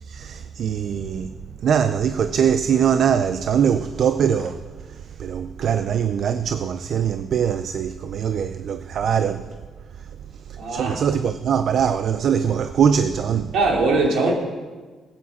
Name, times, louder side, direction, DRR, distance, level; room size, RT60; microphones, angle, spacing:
voice 1, 0.1-1.3 1.6-4.6 4.9-9.5 10.7-13.5, right 8 dB, 60° right, 0.6 m, -22 dB
voice 2, 10.6-11.0 13.5-14.3, right 3 dB, 75° right, 3.3 m, -20 dB
15.5 x 8.8 x 7.3 m
cardioid pair, 90°, 0 cm